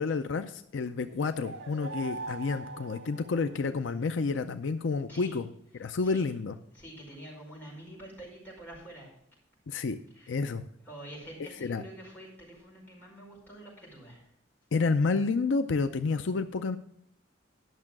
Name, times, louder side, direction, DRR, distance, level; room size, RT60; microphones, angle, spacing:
voice 1, 0.0-5.4 5.8-6.5 9.7-10.0 10.3-10.6 11.6-11.8 14.7-16.8, left 4 dB, 75° left, 9 dB, 0.5 m, -29 dB
sound 1, 1.1-4.0, right 2 dB, 90° right, 1.5 m, -42 dB
voice 2, 6.7-9.1 10.1-10.3 10.8-14.3, right 1 dB, 10° left, -5 dB, 5.1 m, -47 dB
11.0 x 6.5 x 6.0 m, 0.73 s
head